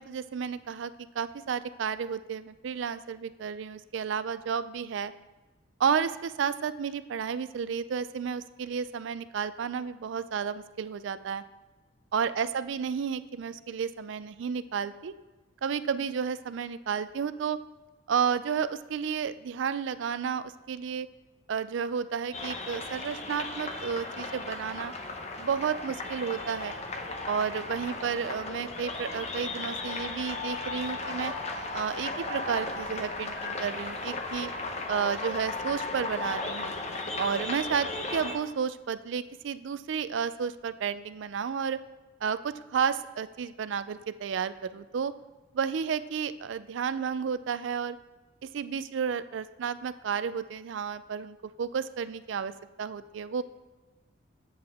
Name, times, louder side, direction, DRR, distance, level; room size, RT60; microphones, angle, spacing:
voice 1, 0.0-5.1 5.8-11.4 12.1-15.1 15.6-17.6 18.1-21.1 21.5-24.9 25.4-26.7 27.3-31.3 31.7-34.5 34.9-36.7 37.2-41.8 42.2-45.1 45.5-48.0 48.5-52.5 52.8-53.4, right 7 dB, 65° right, 14 dB, 0.4 m, -32 dB
sound 1, 22.3-38.4, left 3 dB, 35° left, 0.7 m, -36 dB
7.8 x 7.7 x 3.5 m, 1.2 s
head